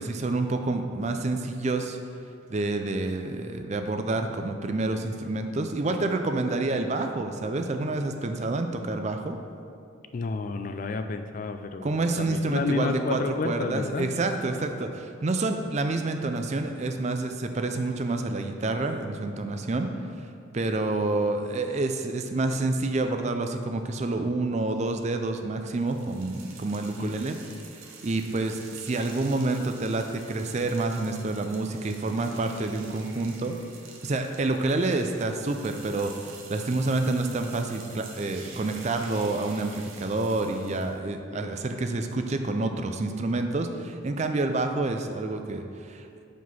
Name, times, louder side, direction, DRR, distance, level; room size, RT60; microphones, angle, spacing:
voice 1, 0.0-2.0 2.5-9.4 11.8-13.2 13.4-19.9 20.5-27.4 28.0-33.6 34.0-46.0, right 2 dB, 35° right, 6 dB, 0.4 m, -28 dB
voice 2, 10.1-14.1 27.0-27.6 41.3-41.9, left 4 dB, 40° left, 7 dB, 0.3 m, -32 dB
sound 1, 25.7-41.0, right 5 dB, 80° right, 1.0 m, -48 dB
6.0 x 5.1 x 5.4 m, 2.5 s
head